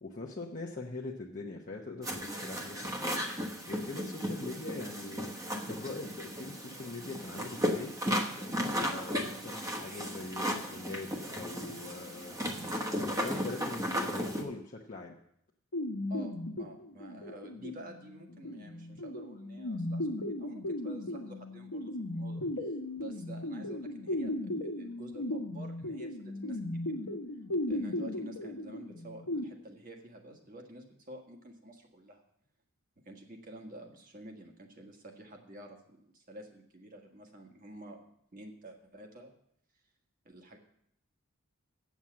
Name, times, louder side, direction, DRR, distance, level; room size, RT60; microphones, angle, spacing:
voice 1, 0.0-7.9 8.2-12.4 12.9-15.2, left 2 dB, 40° left, -1 dB, 0.8 m, -43 dB
sound 1, 2.0-14.4, equal, 15° right, 1.1 m, -35 dB
sound 2, 15.7-29.4, left 1 dB, 80° left, 1.1 m, -37 dB
voice 2, 16.1-27.0 27.7-32.2 33.0-35.8 36.1-38.0 38.3-39.3 40.2-40.6, right 1 dB, 40° right, 3 dB, 1.5 m, -50 dB
8.2 x 7.3 x 7.4 m, 0.71 s
head